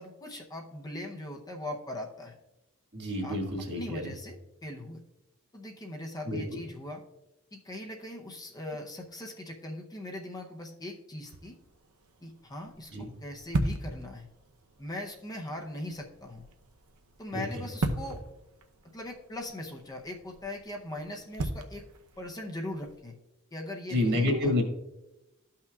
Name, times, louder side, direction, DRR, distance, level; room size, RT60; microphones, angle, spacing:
voice 1, 0.0-2.3 3.2-3.4 3.8-4.3 4.6-5.0 5.5-7.0 7.5-11.5 12.2-14.3 14.8-16.5 17.2-18.2 18.9-21.8 22.2-23.2 23.5-24.5, left 1 dB, 15° left, 1 dB, 0.7 m, -40 dB
voice 2, 2.9-4.1 6.2-6.6 12.9-13.1 17.3-17.6 23.9-24.6, left 1 dB, 50° right, 1 dB, 1.7 m, -29 dB
sound 1, 11.2-23.0, right 2 dB, 90° right, 0.7 m, -39 dB
13.5 x 5.7 x 2.3 m, 0.95 s
head